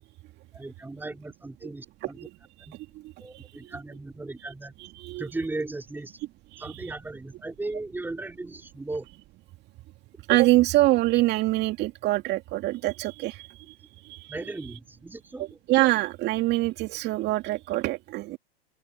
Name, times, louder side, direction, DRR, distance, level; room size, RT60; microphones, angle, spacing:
voice 1, 0.5-2.3 2.6-2.8 3.2-4.7 5.2-6.2 6.6-9.1 14.3-15.6, right 2 dB, 5° right, 4.4 m, -37 dB
voice 2, 4.8-5.2 6.5-6.7 10.3-13.5 14.0-14.3 15.7-18.4, right 18 dB, 35° right, 2.3 m, -24 dB
open air
figure-of-eight pair, 100°, 30 cm